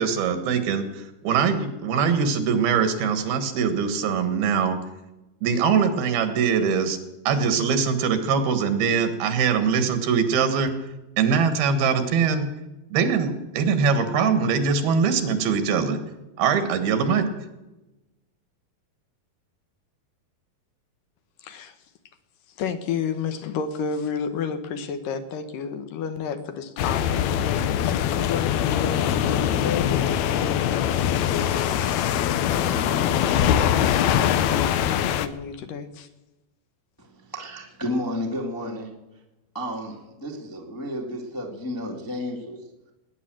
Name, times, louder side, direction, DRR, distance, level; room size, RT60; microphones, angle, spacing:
voice 1, 0.0-4.8 5.4-7.0 7.3-10.7 11.2-12.5 12.9-16.0 16.4-17.3, right 6 dB, 80° right, 9 dB, 3.4 m, -22 dB
voice 2, 21.4-21.8 22.6-31.9 32.5-36.1, left 6 dB, 70° left, 9 dB, 2.5 m, -32 dB
sound 1, 26.8-35.3, left 10 dB, 85° left, 1.6 m, -23 dB
voice 3, 37.0-38.9 39.5-42.6, left 1 dB, 10° left, 0 dB, 0.9 m, -32 dB
19.0 x 9.9 x 7.6 m, 1.0 s
omnidirectional pair, 4.3 m